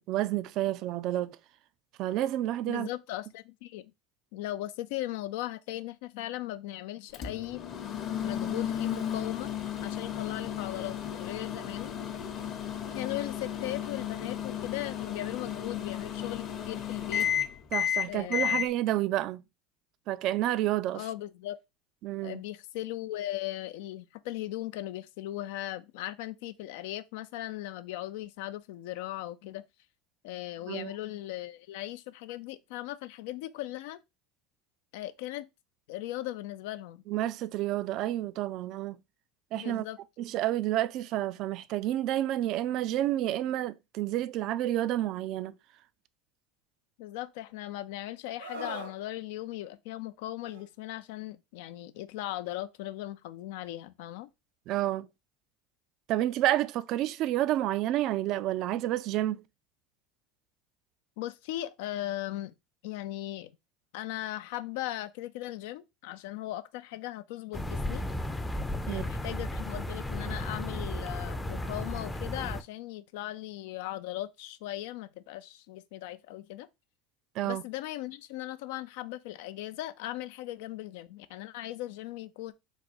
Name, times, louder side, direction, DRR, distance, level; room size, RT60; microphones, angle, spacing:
voice 1, 0.1-1.4 2.0-2.9 17.7-19.4 20.1-21.0 22.0-22.4 30.7-30.9 37.1-39.0 39.5-39.8 40.2-45.6 54.7-55.1 56.1-59.4 68.9-69.0 77.4-77.6, right 14 dB, 55° right, 0.4 m, -29 dB
voice 2, 2.7-3.9 4.3-7.6 8.2-9.5 9.8-11.9 12.9-17.3 18.0-18.7 20.9-21.6 22.2-29.6 30.2-34.0 34.9-35.5 35.9-37.0 39.5-40.0 47.0-54.3 61.2-62.5 62.8-63.5 63.9-68.0 68.9-76.7 77.4-82.5, left 15 dB, 70° left, 0.4 m, -38 dB
Microwave oven, 7.1-18.7, left 9 dB, 45° left, 0.9 m, -33 dB
Screaming, 48.4-49.0 50.4-50.7, right 2 dB, 90° right, 1.0 m, -40 dB
sound 1, 67.5-72.6, left 1 dB, 10° left, 0.5 m, -34 dB
4.0 x 2.3 x 4.2 m
hypercardioid pair, 80°, 0 cm